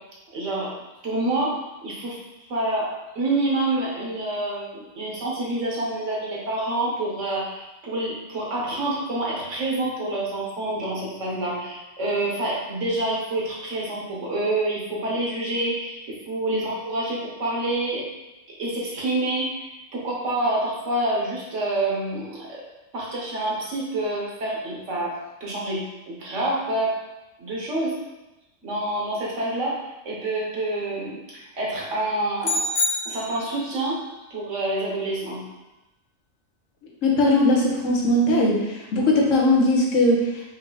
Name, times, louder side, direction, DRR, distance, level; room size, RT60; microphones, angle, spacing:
voice 1, 0.3-0.7 1.0-2.2 2.5-18.0 18.6-22.6 22.9-25.1 25.4-27.0 27.4-28.0 28.6-32.6 33.0-34.0 34.3-35.4, right 2 dB, 70° right, -4 dB, 1.4 m, -27 dB
sound 1, 32.4-33.8, left 2 dB, 55° left, 0.7 m, -26 dB
voice 2, 37.0-40.4, left 1 dB, 75° left, -2 dB, 1.3 m, -20 dB
4.9 x 2.7 x 3.9 m, 1.0 s
omnidirectional pair, 1.3 m